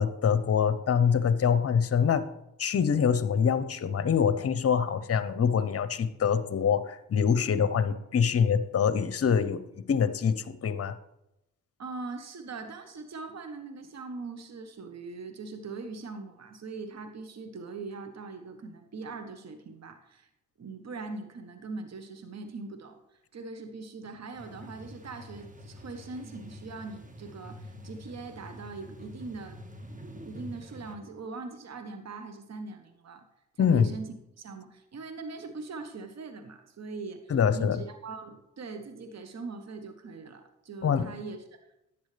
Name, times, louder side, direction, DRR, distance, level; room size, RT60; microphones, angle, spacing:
voice 1, 0.0-2.3 2.6-9.6 9.9-10.9 33.6-33.9 37.3-37.8 40.8-41.1, left 7 dB, 45° left, 13 dB, 0.8 m, -25 dB
voice 2, 11.8-20.3 20.6-29.6 30.3-33.3 33.5-34.1 34.4-41.4, right 3 dB, 50° right, 7 dB, 1.2 m, -41 dB
sound 1, 24.4-31.0, equal, 25° right, 1.5 m, -46 dB
10.5 x 8.7 x 3.3 m, 0.85 s
supercardioid pair, 50°, 33 cm